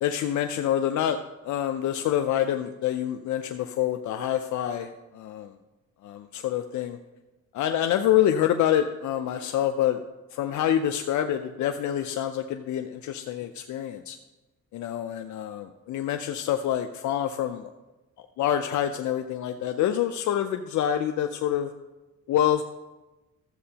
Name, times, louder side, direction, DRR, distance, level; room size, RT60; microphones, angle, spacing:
voice 1, 0.0-1.2 1.4-5.5 6.0-7.0 7.5-10.0 10.3-14.2 14.7-17.7 18.4-21.7 22.3-22.6, left 10 dB, 75° left, 7 dB, 0.5 m, -26 dB
13.0 x 7.6 x 2.8 m, 1.1 s
cardioid pair, 115°, 29 cm